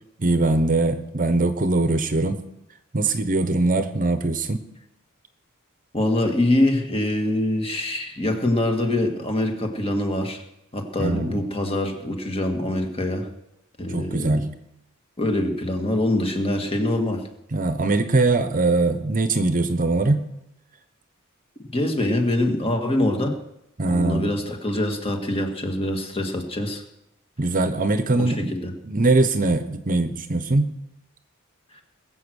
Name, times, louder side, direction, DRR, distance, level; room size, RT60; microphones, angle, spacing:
voice 1, 0.2-2.4 2.9-4.6 11.0-11.4 13.9-14.5 17.5-20.3 23.8-24.3 27.4-28.5 28.8-30.7, right 2 dB, 40° right, 10 dB, 1.0 m, -21 dB
voice 2, 5.9-10.4 10.7-13.3 13.8-14.4 15.2-17.2 21.7-23.4 23.9-26.8 28.1-28.7 31.7-31.8, left 1 dB, 25° left, 3 dB, 1.9 m, -24 dB
21.0 x 7.8 x 6.4 m, 0.82 s
head